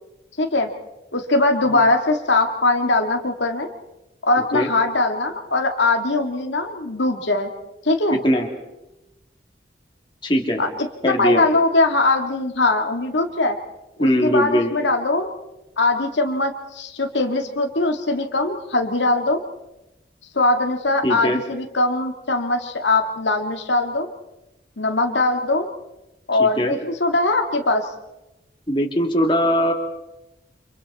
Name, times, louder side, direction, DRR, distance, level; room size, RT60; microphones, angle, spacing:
voice 1, 0.4-0.7 1.1-3.7 4.2-7.5 7.8-8.2 10.6-10.7 11.0-13.6 14.0-15.3 15.8-19.4 20.3-24.1 24.8-25.7 26.3-27.9, left 2 dB, 90° left, 4 dB, 2.2 m, -21 dB
voice 2, 8.1-8.5 10.2-10.6 11.0-11.4 14.0-14.7 21.0-21.4 26.4-26.7 28.7-29.7, equal, 25° left, 1 dB, 2.9 m, -20 dB
30.0 x 26.5 x 4.3 m, 0.94 s
head